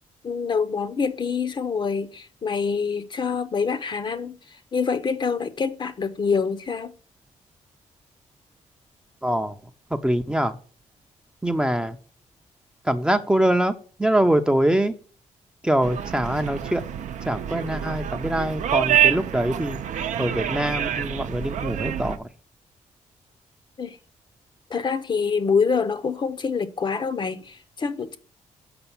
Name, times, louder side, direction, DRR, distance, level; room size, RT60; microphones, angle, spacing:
voice 1, 0.2-4.3 4.7-6.9 23.8-24.0 24.7-28.2, left 5 dB, 35° left, 0.7 m, -26 dB
voice 2, 9.2-9.6 9.9-10.6 11.4-12.0 12.8-13.7 14.0-14.9 15.6-16.8 17.3-19.8 20.2-22.3, right 1 dB, 5° right, 0.6 m, -23 dB
sound 1, 15.8-22.2, right 10 dB, 70° right, 0.7 m, -26 dB
6.9 x 5.1 x 7.1 m
cardioid pair, 120°, 13 cm